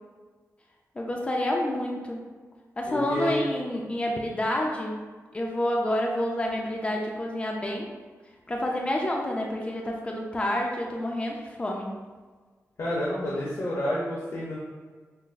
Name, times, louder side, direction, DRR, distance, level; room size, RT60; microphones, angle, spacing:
voice 1, 1.0-2.2 2.8-4.9 5.3-7.9 8.5-11.9, left 1 dB, 20° left, 0 dB, 0.5 m, -28 dB
voice 2, 2.9-3.4 12.8-14.6, left 1 dB, 65° left, -7 dB, 0.8 m, -29 dB
5.6 x 2.1 x 2.6 m, 1.4 s
wide cardioid pair, 115°, 6 cm